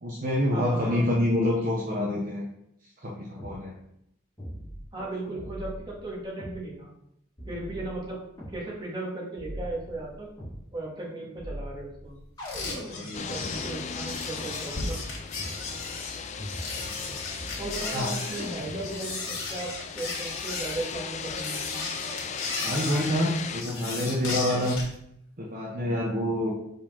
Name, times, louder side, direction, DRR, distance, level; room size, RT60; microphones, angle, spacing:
voice 1, 0.0-2.4 3.0-3.7 5.0-5.1 12.9-13.6 16.7-17.2 17.9-18.1 22.6-24.8 25.4-26.5, left 1 dB, 40° right, -3 dB, 1.0 m, -27 dB
voice 2, 0.5-1.1 4.9-6.9 7.5-8.2 8.5-10.3 10.7-12.2 13.1-15.0 17.6-21.9, right 2 dB, 20° right, -5 dB, 1.8 m, -36 dB
sound 1, 3.4-3.6 4.4-5.0 5.4-6.6 7.4-8.6 9.4-10.6 11.4-13.5 14.4-14.5 15.4-15.6 16.4-17.1 17.4-18.0 18.4-19.0, equal, 20° left, 2.1 m, -41 dB
sound 2, 12.4-24.9, left 3 dB, 75° left, 2.4 m, -35 dB
sound 3, 13.1-23.6, left 6 dB, 35° left, 0.4 m, -37 dB
5.2 x 4.3 x 5.8 m, 0.76 s
head